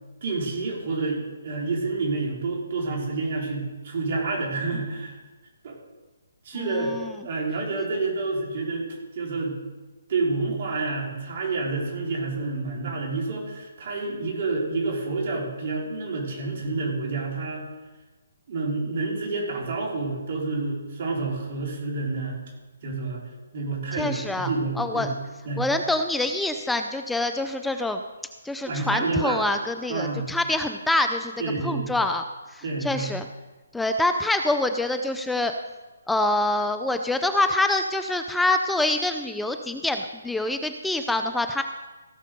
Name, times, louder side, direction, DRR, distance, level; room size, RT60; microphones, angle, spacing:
voice 1, 0.2-5.2 5.6-5.8 6.4-6.9 7.2-8.9 9.1-9.6 10.1-17.6 18.5-22.4 22.8-23.2 23.5-25.1 25.4-25.6 28.6-29.4 29.9-30.3 31.4-32.0 32.6-33.1, right 3 dB, 45° right, -2 dB, 4.3 m, -28 dB
voice 2, 24.0-24.5 24.8-25.1 25.6-28.0 28.4-31.3 31.6-32.2 32.5-33.3 33.7-35.5 36.1-41.6, left 2 dB, 5° left, 7 dB, 0.5 m, -25 dB
16.5 x 6.3 x 6.9 m, 1.2 s
hypercardioid pair, 155°, 0 cm